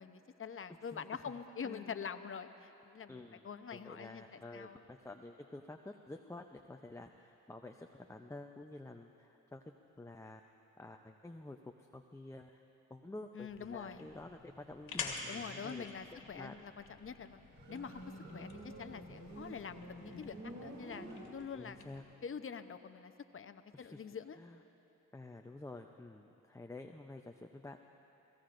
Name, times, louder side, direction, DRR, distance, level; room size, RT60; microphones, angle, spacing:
voice 1, 0.0-4.8 13.3-14.1 15.3-17.4 17.7-18.0 18.3-18.5 18.8-21.8 22.2-24.4, left 6 dB, 40° left, 9 dB, 0.8 m, -45 dB
voice 2, 0.8-1.2 1.6-1.9 3.1-10.4 10.8-12.6 12.9-15.8 16.1-16.6 21.5-22.0 23.7-24.0 24.4-24.6 25.1-27.8, left 2 dB, 10° left, 4 dB, 0.6 m, -50 dB
sound 1, 13.5-22.0, left 5 dB, 85° left, 1.8 m, -49 dB
Motorcycle, 17.5-21.9, right 1 dB, 55° right, 2.9 m, -49 dB
30.0 x 17.0 x 2.6 m, 3.0 s
supercardioid pair, 60°, 32 cm